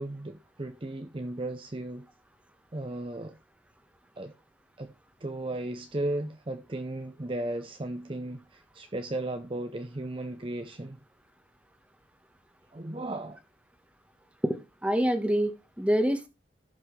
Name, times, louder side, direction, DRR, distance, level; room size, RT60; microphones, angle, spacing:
voice 1, 0.0-2.1 2.7-3.3 4.2-4.3 4.8-4.9 5.2-11.0 12.7-13.4, right 1 dB, 30° right, 0.6 m, -35 dB
voice 2, 14.8-16.3, equal, 5° right, 1.2 m, -26 dB
17.0 x 5.9 x 3.2 m
head